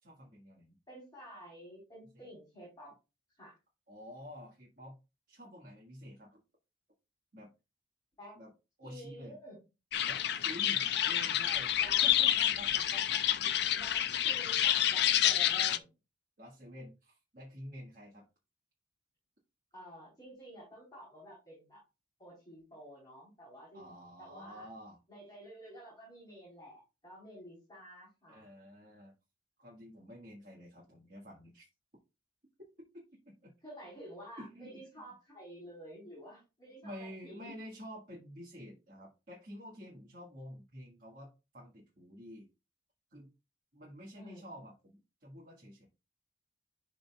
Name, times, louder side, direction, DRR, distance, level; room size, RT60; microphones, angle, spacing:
voice 1, 0.0-0.7 3.9-5.0 5.3-6.4 7.3-7.5 8.3-8.5 8.8-9.4 10.0-13.4 16.4-18.2 23.7-25.0 28.3-29.1 29.6-31.6 32.9-33.5 34.4-34.8 36.8-42.5 43.1-43.3 43.7-45.9, equal, 45° right, -4 dB, 1.7 m, -49 dB
voice 2, 0.9-2.9 3.4-3.6 8.2-8.4 8.8-9.6 11.8-12.1 13.7-15.9 19.7-21.8 22.2-23.9 24.2-24.7 25.1-28.5 33.6-37.5 44.1-44.6, right 1 dB, 20° left, -6 dB, 4.0 m, -51 dB
sound 1, 9.9-15.8, left 11 dB, 60° left, 0.5 m, -29 dB
11.0 x 4.0 x 2.3 m, 0.27 s
head